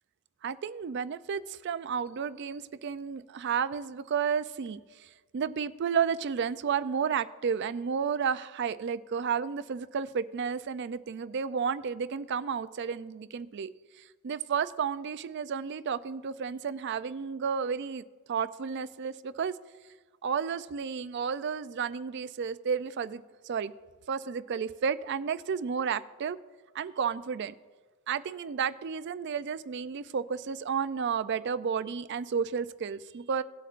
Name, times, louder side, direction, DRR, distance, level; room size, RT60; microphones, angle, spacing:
voice 1, 0.4-18.0 18.3-19.6 20.2-23.7 24.1-26.4 26.7-27.5 28.1-33.4, right 6 dB, 55° right, 15 dB, 0.4 m, -32 dB
18.0 x 7.9 x 2.5 m, 1.3 s
head